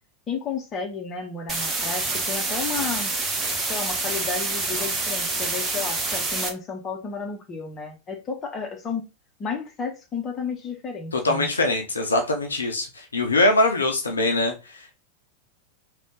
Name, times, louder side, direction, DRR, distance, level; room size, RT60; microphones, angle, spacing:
voice 1, 0.3-3.1 3.7-9.0 9.4-11.5, left 5 dB, 25° left, 1.0 m, -32 dB
sound 1, 1.5-6.5, right 3 dB, 20° right, 1.1 m, -27 dB
voice 2, 11.1-14.9, left 2 dB, 75° left, 0.7 m, -23 dB
3.5 x 2.4 x 3.8 m
figure-of-eight pair, 90°, 0 cm